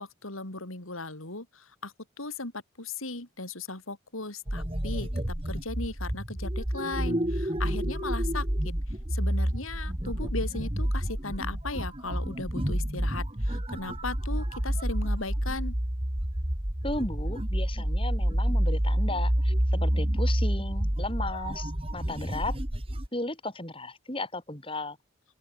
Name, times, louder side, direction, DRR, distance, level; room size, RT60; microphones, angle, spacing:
voice 1, 0.0-1.5 1.8-1.9 2.2-2.5 2.8-5.1 5.5-8.5 9.1-15.7, left 3 dB, 85° left, 5.0 m, -37 dB
sound 1, 4.5-23.1, equal, 25° right, 2.3 m, -29 dB
voice 2, 16.8-22.6 23.1-25.0, left 2 dB, 25° left, 7.8 m, -35 dB
open air
head